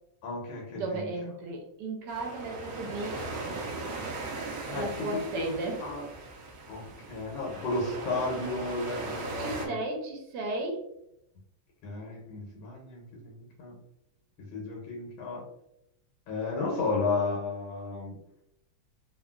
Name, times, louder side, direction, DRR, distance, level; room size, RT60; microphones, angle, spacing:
voice 1, 0.2-1.1 4.7-5.5 5.8-6.0 6.7-9.7 11.8-13.8 14.4-15.5 16.3-18.2, left 3 dB, 85° left, -1 dB, 1.4 m, -33 dB
voice 2, 0.7-3.6 4.7-5.8 9.4-10.8, right 2 dB, 70° right, 2 dB, 1.1 m, -35 dB
sound 1, 2.1-9.7, right 3 dB, 90° right, 0.8 m, -38 dB
3.5 x 2.2 x 2.2 m, 0.80 s
omnidirectional pair, 2.2 m